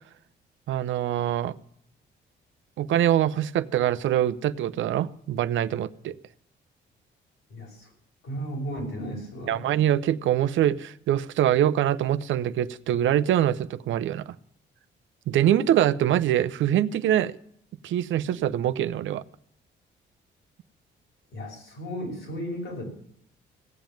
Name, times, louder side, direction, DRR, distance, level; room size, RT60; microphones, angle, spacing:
voice 1, 0.7-1.5 2.8-6.2 9.5-14.3 15.3-17.4 17.8-19.2, right 11 dB, 75° right, 0.7 m, -24 dB
voice 2, 7.5-7.9 8.2-9.7 21.3-22.8, equal, 80° left, 6.6 m, -34 dB
16.5 x 7.3 x 9.1 m
cardioid pair, 90°, 20 cm